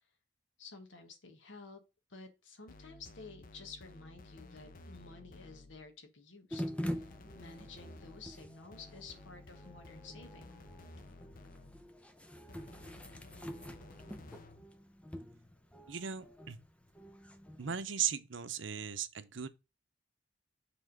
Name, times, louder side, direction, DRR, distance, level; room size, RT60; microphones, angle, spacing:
voice 1, 0.6-1.8 2.1-7.1 7.3-10.5, left 4 dB, 80° left, 1.3 m, -52 dB
sound 1, 2.7-5.9 6.8-12.0 12.5-14.7, left 2 dB, 50° left, 0.8 m, -54 dB
sound 2, 6.5-17.8, equal, 5° left, 0.6 m, -46 dB
voice 2, 15.9-16.6 17.6-19.5, right 8 dB, 80° right, 0.7 m, -37 dB
7.1 x 3.6 x 5.2 m
head